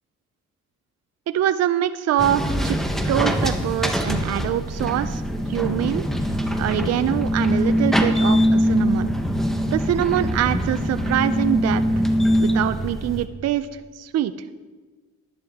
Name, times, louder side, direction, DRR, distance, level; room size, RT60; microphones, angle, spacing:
voice 1, 1.3-2.8 3.1-5.2 5.5-6.1 6.6-9.1 9.7-11.8 12.4-14.3, right 11 dB, 55° right, 11 dB, 0.5 m, -24 dB
sound 1, 2.2-13.3, equal, ahead, 1.0 m, -22 dB
11.0 x 11.0 x 3.6 m, 1.3 s
cardioid pair, 90°, 30 cm